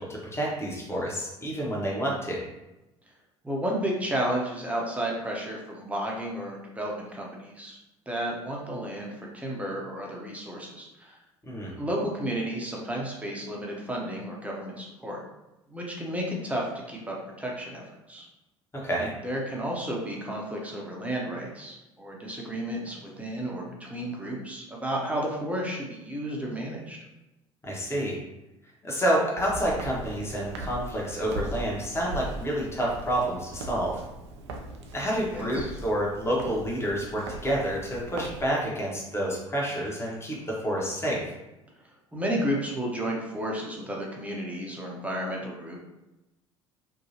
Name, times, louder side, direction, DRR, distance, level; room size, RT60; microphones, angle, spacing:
voice 1, 0.1-2.4 11.5-11.7 18.8-19.1 27.6-28.1 28.8-34.0 34.9-40.4 40.6-41.2, right 1 dB, 15° left, -4 dB, 1.0 m, -28 dB
voice 2, 3.4-7.8 8.1-11.1 11.8-15.2 15.7-18.2 19.0-27.0 35.3-35.7 42.1-45.8, right 1 dB, 10° right, -2 dB, 0.7 m, -32 dB
Walk footsteps, 29.4-38.4, right 2 dB, 75° right, 0.4 m, -40 dB
2.7 x 2.2 x 2.8 m, 0.97 s
figure-of-eight pair, 60°, 15 cm